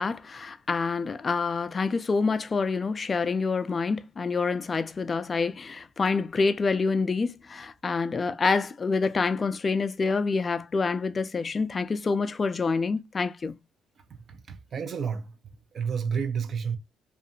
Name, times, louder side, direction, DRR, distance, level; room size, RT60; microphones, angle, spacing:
voice 1, 0.0-13.6, left 4 dB, 30° left, 0.3 m, -27 dB
voice 2, 14.1-16.8, right 6 dB, 45° right, 0.5 m, -31 dB
2.6 x 2.4 x 2.7 m
cardioid pair, 100°, 0 cm